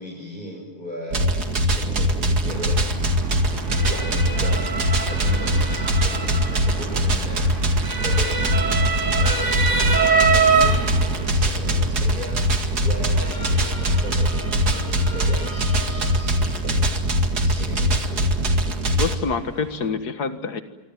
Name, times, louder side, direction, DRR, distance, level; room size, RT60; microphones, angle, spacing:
voice 1, 0.0-3.0 3.8-18.3, equal, 30° left, -2 dB, 6.9 m, -37 dB
sound 1, 1.1-19.2, equal, 80° right, 2.7 m, -22 dB
Motor vehicle (road) / Siren, 2.5-19.9, right 4 dB, 50° right, 3.4 m, -27 dB
voice 2, 19.0-20.6, left 5 dB, 90° left, 8 dB, 2.2 m, -26 dB
26.5 x 25.5 x 7.5 m, 1.1 s
omnidirectional pair, 1.7 m